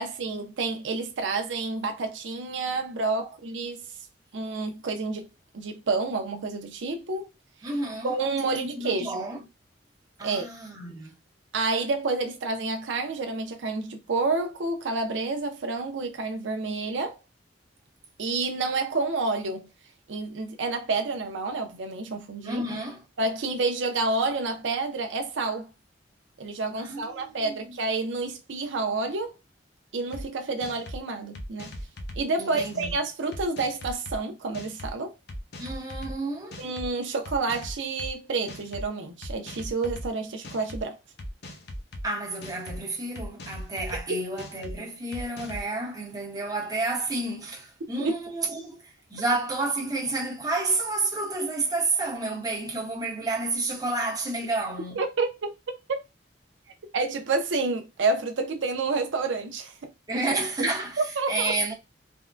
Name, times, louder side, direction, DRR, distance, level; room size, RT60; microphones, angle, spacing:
voice 1, 0.0-3.8 4.3-5.3 5.5-7.3 8.0-9.2 10.2-10.5 11.5-17.2 18.2-19.7 20.1-22.6 23.2-25.7 26.4-29.3 29.9-31.7 32.2-35.1 36.6-41.0 48.0-48.1 55.0-55.5 55.9-56.0 56.9-59.9 60.6-60.7 61.2-61.6, right 3 dB, 85° right, 0.5 m, -29 dB
voice 2, 7.6-8.2 8.5-9.4 10.2-11.2 22.4-23.0 26.8-27.7 32.4-32.9 35.6-36.6 42.0-55.0 60.1-61.0 61.3-61.7, right 2 dB, 20° right, 0.8 m, -30 dB
sound 1, 30.1-30.2 30.6-31.0 31.4-32.2 32.6-32.9 33.3-34.2 34.5-34.9 35.3-36.1 36.5-36.9 37.3-38.1 38.5-38.9 39.2-40.1 40.4-40.8 41.2-42.0 42.4-42.8 43.2-44.0 44.4-44.7 45.1-45.7, equal, 60° left, 0.6 m, -38 dB
3.4 x 2.1 x 2.4 m
head